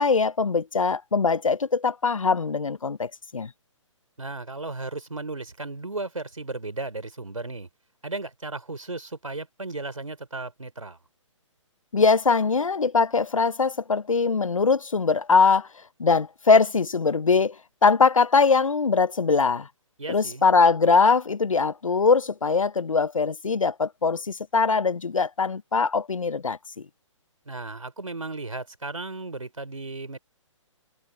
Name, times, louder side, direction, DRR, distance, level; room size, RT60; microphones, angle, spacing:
voice 1, 0.0-3.5 11.9-15.7 16.0-17.6 17.8-19.7 20.1-26.9, left 4 dB, 85° left, 0.9 m, -22 dB
voice 2, 4.2-7.7 8.0-11.0 20.0-20.5 27.5-30.2, right 3 dB, 90° right, 3.4 m, -35 dB
figure-of-eight pair, 135°, 17 cm